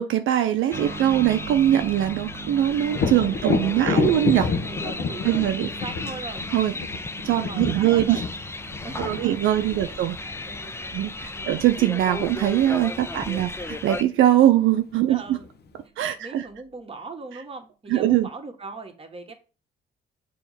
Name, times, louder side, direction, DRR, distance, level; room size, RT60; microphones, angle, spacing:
voice 1, 0.0-4.5 5.2-5.7 6.5-6.7 7.2-8.2 9.0-10.2 10.9-15.4 16.0-16.5 17.9-18.3, right 12 dB, 80° right, 9 dB, 0.5 m, -22 dB
sound 1, 0.7-14.0, left 2 dB, 15° left, 0.5 m, -35 dB
sound 2, 0.7-15.1 15.4-15.5 16.5-16.6, right 5 dB, 50° right, 1.6 m, -42 dB
Thunder, 2.9-10.6 14.2-14.3 14.8-15.7, left 5 dB, 55° left, 1.0 m, -29 dB
voice 2, 3.5-4.3 4.5-6.4 6.8-7.0 7.5-8.2 8.8-10.0 10.3-10.9 11.3-11.5 13.1-13.2 15.1-15.5 16.2-19.3, right 3 dB, 30° right, 3 dB, 1.6 m, -40 dB
6.9 x 3.1 x 5.7 m, 0.35 s
cardioid pair, 90°, 20 cm